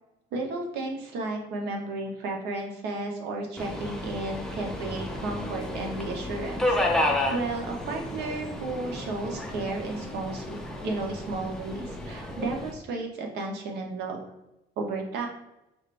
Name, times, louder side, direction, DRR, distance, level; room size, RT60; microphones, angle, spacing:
voice 1, 0.3-6.8 7.3-10.6 10.8-14.2 14.8-15.3, right 2 dB, 80° right, 2 dB, 0.9 m, -33 dB
Subway metro underground, 3.6-12.7, left 1 dB, 5° left, 0.6 m, -32 dB
4.8 x 2.5 x 3.3 m, 0.92 s
cardioid pair, 110°, 17 cm